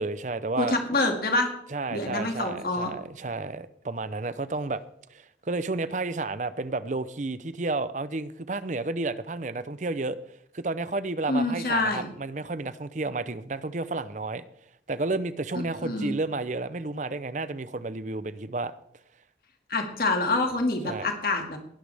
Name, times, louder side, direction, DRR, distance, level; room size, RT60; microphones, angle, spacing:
voice 1, 0.0-0.8 1.7-4.8 5.1-10.2 10.5-14.4 14.9-18.7 20.8-21.1, right 3 dB, 45° right, 0.6 m, -31 dB
voice 2, 0.6-1.5 1.9-2.9 11.3-12.1 15.8-16.2 19.7-21.6, left 2 dB, 55° left, 2.3 m, -26 dB
19.5 x 11.5 x 3.5 m
head